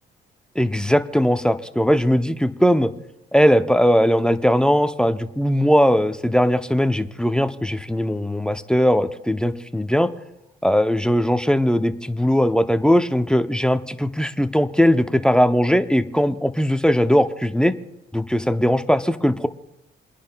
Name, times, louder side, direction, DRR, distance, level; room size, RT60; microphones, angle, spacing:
voice 1, 0.6-2.9 3.3-10.1 10.6-17.7 18.1-19.5, equal, 5° left, 10 dB, 0.6 m, -19 dB
30.0 x 10.0 x 2.2 m, 0.92 s
cardioid pair, 90°, 20 cm